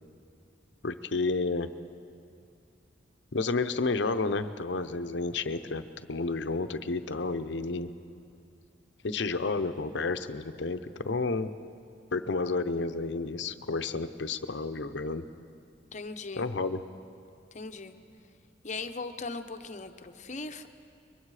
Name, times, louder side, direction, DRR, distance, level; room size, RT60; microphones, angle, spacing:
voice 1, 0.8-1.7 3.3-5.8 6.1-7.9 9.0-11.5 12.1-15.3 16.4-16.8, left 3 dB, 70° left, 10 dB, 0.7 m, -31 dB
voice 2, 15.9-16.5 17.5-17.9 18.6-20.7, left 3 dB, 40° left, 8 dB, 0.9 m, -39 dB
24.0 x 22.0 x 4.9 m, 2.4 s
head